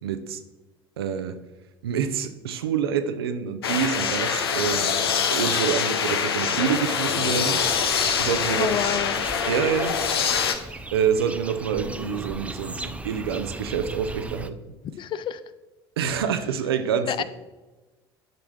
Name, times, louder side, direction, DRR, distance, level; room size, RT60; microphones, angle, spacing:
voice 1, 0.0-0.4 1.0-1.4 1.8-4.9 5.3-7.6 8.2-9.0 9.5-10.0 10.9-14.6 16.0-17.2, right 7 dB, 70° right, 0.7 m, -27 dB
sound 1, 3.6-10.5, left 6 dB, 75° left, 0.7 m, -24 dB
sound 2, 7.6-14.5, right 2 dB, 10° right, 0.5 m, -38 dB
voice 2, 8.6-9.3 15.0-15.5 17.1-17.2, left 9 dB, 40° left, 0.5 m, -29 dB
10.5 x 6.1 x 3.2 m
figure-of-eight pair, 65°, 13 cm